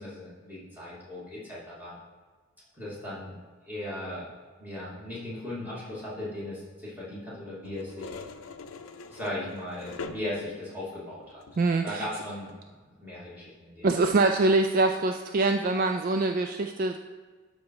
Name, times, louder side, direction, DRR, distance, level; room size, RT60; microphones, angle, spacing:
voice 1, 0.0-1.9 2.7-3.3 3.7-4.3 4.6-8.1 9.1-11.4 11.8-12.8 13.0-13.9, left 1 dB, 10° right, -9 dB, 2.8 m, -37 dB
sound 1, 7.6-10.7 11.4-11.8 12.5-12.6, left 4 dB, 80° left, 0.6 m, -43 dB
voice 2, 11.6-12.1 13.8-17.0, right 3 dB, 40° right, 6 dB, 0.3 m, -24 dB
12.0 x 4.1 x 4.8 m, 1.5 s
head